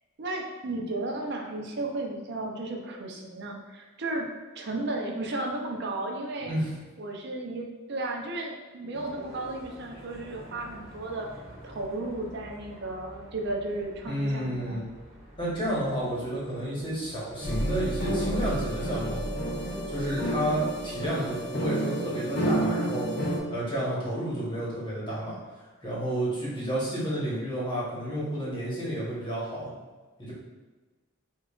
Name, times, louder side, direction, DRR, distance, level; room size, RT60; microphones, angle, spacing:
voice 1, 0.2-4.3 4.6-6.5 7.0-11.3 11.6-14.8, right 2 dB, 50° right, 1 dB, 0.5 m, -34 dB
sound 1, 8.9-18.5, equal, 15° right, 1.1 m, -49 dB
voice 2, 14.1-14.9 15.4-19.2 19.9-23.1 23.5-29.7 30.2-30.3, right 1 dB, 20° left, -7 dB, 1.0 m, -31 dB
sound 2, 17.4-23.4, right 1 dB, 50° left, 0.6 m, -30 dB
5.3 x 2.4 x 2.4 m, 1.3 s
head